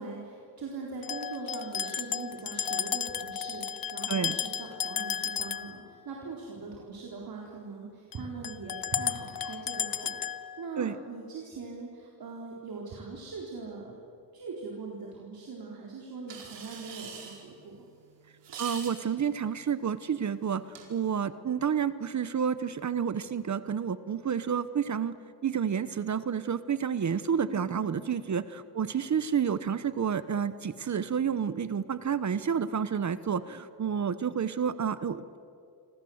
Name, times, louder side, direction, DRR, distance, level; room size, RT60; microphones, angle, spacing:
voice 1, 0.0-14.0 14.3-17.8 27.5-28.1, right 4 dB, 60° right, -2 dB, 4.2 m, -41 dB
sound 1, 1.0-5.8 8.1-8.2 8.4-10.7, left 8 dB, 55° left, 1.0 m, -33 dB
sound 2, 16.3-21.3, right 6 dB, 90° right, 4.8 m, -46 dB
voice 2, 18.6-20.6 20.9-25.2 25.4-35.4, right 7 dB, 45° right, 14 dB, 1.0 m, -30 dB
27.0 x 26.5 x 8.0 m, 2.5 s
cardioid pair, 115°, 41 cm